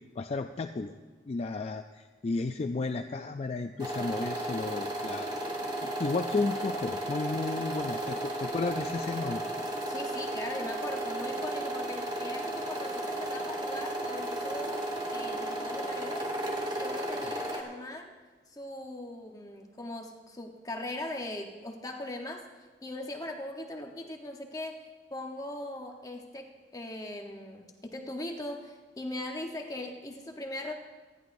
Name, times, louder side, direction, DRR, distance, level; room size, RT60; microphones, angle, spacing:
voice 1, 0.2-0.9 1.3-5.3 5.8-9.4, left 3 dB, 35° left, 7 dB, 0.4 m, -33 dB
sound 1, 3.8-17.6, right 1 dB, 25° right, 2.0 m, -34 dB
voice 2, 9.9-16.3 16.8-18.1 18.5-22.4 22.8-24.8 25.1-30.7, left 1 dB, 20° left, 2 dB, 0.9 m, -40 dB
26.5 x 11.0 x 2.6 m, 1.3 s
head